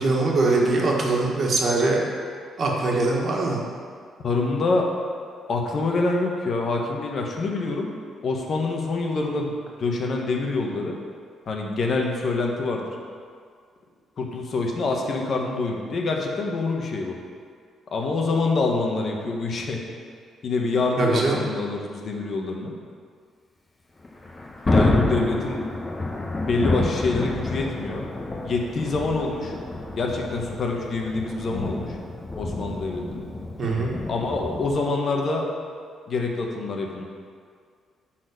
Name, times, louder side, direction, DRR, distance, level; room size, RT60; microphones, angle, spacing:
voice 1, 0.0-2.0 2.6-3.6 21.0-21.4 33.6-33.9, right 3 dB, 50° right, -2 dB, 1.8 m, -22 dB
voice 2, 4.2-4.9 5.5-7.9 8.2-9.5 9.8-11.0 11.5-12.8 14.2-17.2 17.9-19.8 20.4-22.7 24.7-25.6 26.5-28.0 28.4-29.5 30.0-31.9 32.4-33.3 34.1-35.4 36.1-37.0, left 3 dB, 50° left, 1 dB, 1.3 m, -26 dB
Thunder, 24.0-34.8, left 2 dB, 25° left, 1.5 m, -28 dB
9.8 x 4.4 x 6.6 m, 2.1 s
cardioid pair, 90°, 0 cm